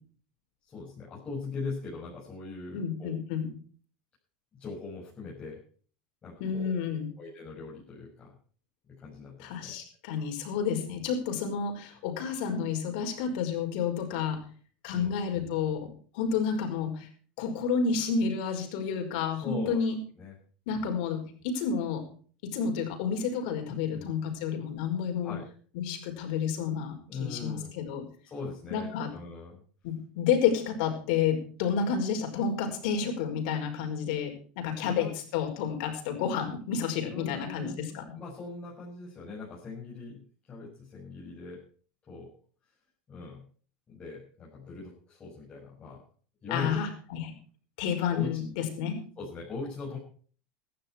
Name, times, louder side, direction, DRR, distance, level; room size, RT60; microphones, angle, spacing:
voice 1, 0.6-3.1 4.5-5.6 6.2-6.7 7.2-8.4 8.9-9.8 14.9-15.5 19.4-19.8 20.2-20.4 20.7-20.9 23.6-24.1 25.2-25.4 27.1-27.8 28.2-29.6 34.8-35.1 37.1-41.6 42.1-42.3 43.1-43.5 43.9-46.0 46.4-46.9 48.1-48.4 49.2-50.0, left 4 dB, 25° left, -5 dB, 6.6 m, -40 dB
voice 2, 2.7-3.5 6.4-7.1 9.4-14.4 14.8-17.1 17.4-20.0 20.7-22.0 22.4-25.3 25.7-28.0 28.7-29.1 29.8-38.0 46.5-47.3 47.8-49.0, left 6 dB, 70° left, 4 dB, 5.4 m, -30 dB
16.5 x 12.0 x 4.6 m, 0.43 s
supercardioid pair, 140°, 5 cm